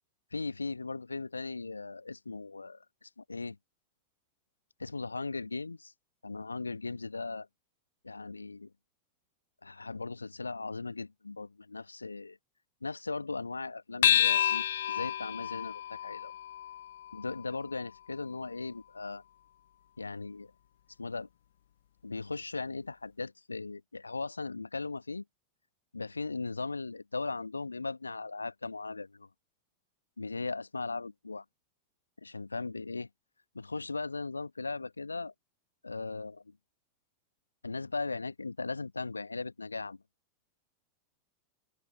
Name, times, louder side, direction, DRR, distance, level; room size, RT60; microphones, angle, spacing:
voice 1, 0.3-3.6 4.8-5.9 6.2-7.5 8.0-8.7 9.6-12.4 12.8-16.3 17.1-19.2 20.0-20.5 21.0-21.3 22.0-25.2 25.9-29.3 30.2-31.4 32.2-33.1 33.5-35.3 35.8-36.5 37.6-40.0, left 3 dB, 80° left, 1.6 m, -38 dB
sound 1, 14.0-18.8, left 11 dB, 60° left, 0.4 m, -30 dB
open air
figure-of-eight pair, 90°, 0 cm